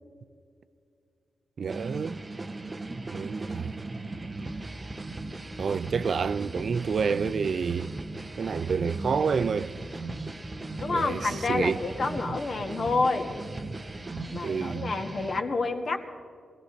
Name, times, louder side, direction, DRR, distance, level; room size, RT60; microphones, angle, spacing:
voice 1, 1.6-2.2 3.1-3.7 5.6-7.9 8.4-9.7 10.9-12.1 14.4-14.9, right 5 dB, 60° right, 0.4 m, -29 dB
sound 1, 1.7-15.4, right 2 dB, 25° right, 0.8 m, -37 dB
voice 2, 10.8-13.4 14.3-16.0, left 3 dB, 50° left, 1.8 m, -28 dB
22.5 x 16.0 x 4.0 m
cardioid pair, 95°, 0 cm